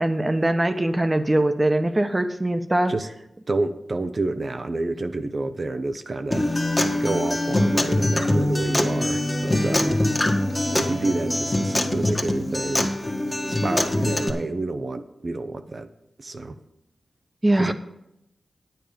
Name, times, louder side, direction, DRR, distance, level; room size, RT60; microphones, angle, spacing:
voice 1, 0.0-2.9 17.4-17.7, right 1 dB, 25° right, 8 dB, 1.1 m, -22 dB
voice 2, 3.5-6.5 7.0-10.0 10.7-13.0 13.5-15.9 16.2-16.6 17.6-17.7, right 2 dB, 50° right, 8 dB, 0.7 m, -28 dB
Acoustic guitar, 6.3-14.3, left 1 dB, 20° left, 1.6 m, -23 dB
9.3 x 9.1 x 5.2 m, 0.84 s
cardioid pair, 45°, 0 cm